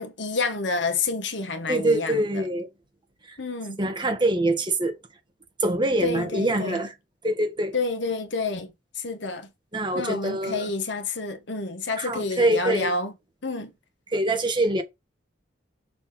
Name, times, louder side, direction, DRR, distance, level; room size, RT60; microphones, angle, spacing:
voice 1, 0.0-2.4 3.4-3.8 6.0-6.8 7.7-9.5 9.9-13.1 13.4-13.7, left 3 dB, 70° left, 1.6 m, -29 dB
voice 2, 1.7-2.7 3.3-3.4 3.8-5.0 5.6-6.9 7.2-7.7 9.7-10.7 12.0-12.9 14.1-14.8, right 1 dB, 25° right, 1.6 m, -24 dB
6.9 x 4.0 x 6.0 m
head